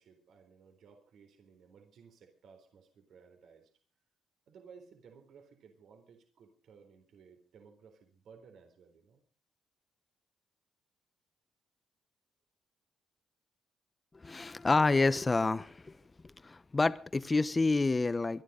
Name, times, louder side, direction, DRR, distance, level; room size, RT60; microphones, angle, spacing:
voice 1, 0.0-3.7 4.5-9.2, right 6 dB, 70° right, 3.9 m, -58 dB
voice 2, 14.1-16.0 16.2-18.4, left 3 dB, 25° left, 1.1 m, -28 dB
24.5 x 11.5 x 5.2 m
cardioid pair, 90°, 0 cm